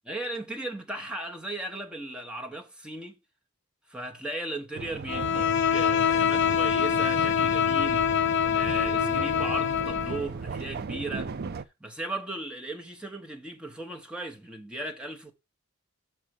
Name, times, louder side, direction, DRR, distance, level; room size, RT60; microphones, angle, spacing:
voice 1, 0.1-3.2 3.9-11.3 11.8-15.3, right 2 dB, 5° right, 1.0 m, -37 dB
sound 1, 4.7-11.6, right 5 dB, 45° right, 0.4 m, -36 dB
Bowed string instrument, 5.1-10.3, left 8 dB, 55° left, 0.4 m, -25 dB
6.6 x 4.5 x 6.4 m
head